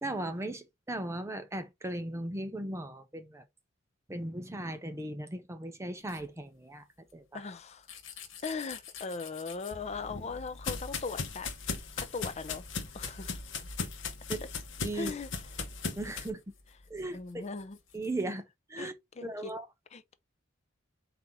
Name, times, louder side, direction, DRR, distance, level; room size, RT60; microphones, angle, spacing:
voice 1, 0.0-3.4 4.1-6.9 7.1-7.4 14.3-14.4 14.8-15.1 16.0-16.4 16.9-17.5 17.9-18.4 18.7-18.9 19.2-19.7, right 1 dB, 15° right, 0.6 m, -37 dB
sound 1, 6.0-6.3 7.1-7.2 7.8-9.8 10.3-13.4 13.7-13.8 14.0-14.1 14.7-18.2, left 7 dB, 85° left, 1.3 m, -52 dB
voice 2, 7.3-7.9 8.4-11.5 12.0-12.6 12.9-13.4 14.9-15.3 17.1-17.8 18.8-18.9 19.2-19.5 19.9-20.1, left 4 dB, 35° left, 0.5 m, -39 dB
sound 2, 9.7-16.3, left 4 dB, 70° left, 1.0 m, -38 dB
4.0 x 2.9 x 3.6 m
head